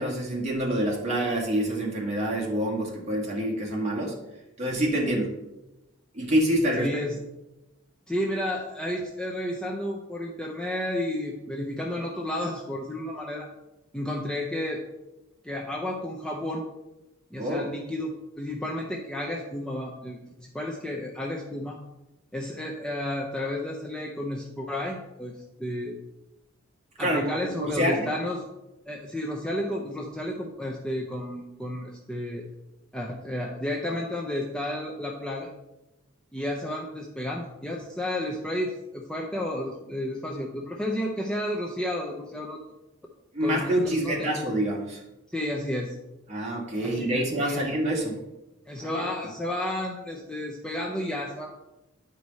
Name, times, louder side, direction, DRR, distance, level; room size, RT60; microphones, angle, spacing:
voice 1, 0.0-4.2 4.6-5.4 6.1-7.0 17.4-17.7 27.0-28.1 43.3-45.0 46.3-48.2 48.8-49.1, right 1 dB, 30° right, -3 dB, 1.8 m, -27 dB
voice 2, 6.8-7.1 8.1-13.5 13.9-14.8 15.4-16.6 17.3-21.8 22.3-26.0 27.0-28.4 28.9-32.5 32.9-35.5 36.3-42.6 43.4-44.3 45.3-45.9 46.8-47.7 48.7-51.6, left 1 dB, 5° left, -2 dB, 0.5 m, -32 dB
9.9 x 4.8 x 4.1 m, 0.99 s
head